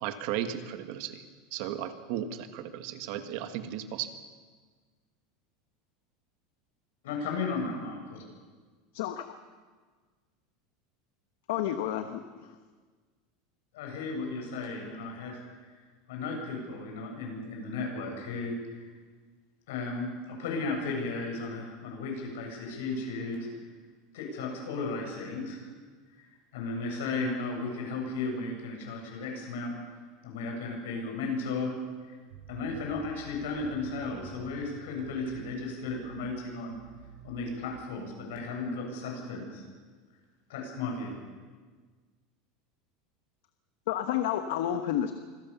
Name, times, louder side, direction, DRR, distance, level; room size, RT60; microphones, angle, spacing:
voice 1, 0.0-1.2 1.5-4.2, right 10 dB, 50° right, 9 dB, 1.5 m, -35 dB
voice 2, 7.0-8.2 13.7-15.4 16.1-18.9 19.7-23.4 24.1-25.6 26.5-29.7 30.2-31.7 32.1-32.2 32.5-36.8 37.2-39.6 40.5-41.2, left 3 dB, 85° left, 1 dB, 7.7 m, -35 dB
voice 3, 8.9-9.4 11.5-12.6 43.9-45.1, left 11 dB, 70° left, 8 dB, 1.1 m, -30 dB
sound 1, 32.3-34.7 35.0-35.6 35.8-36.4 36.7-37.9, right 7 dB, 75° right, 5.9 m, -50 dB
25.5 x 16.5 x 7.1 m, 1.5 s
supercardioid pair, 180°, 0 cm